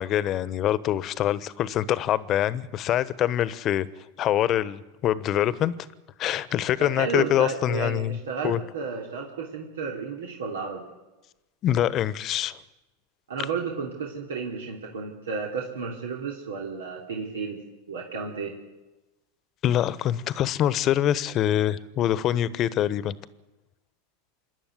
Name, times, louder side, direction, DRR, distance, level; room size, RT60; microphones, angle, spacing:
voice 1, 0.0-3.9 4.2-5.7 6.2-8.2 8.4-8.6 11.6-12.6 19.6-23.1, left 11 dB, 40° left, 1.1 m, -24 dB
voice 2, 6.8-10.9 13.3-17.6 17.9-18.5, right 5 dB, 85° right, 3.1 m, -32 dB
26.5 x 11.0 x 9.3 m
hypercardioid pair, 100°, 0 cm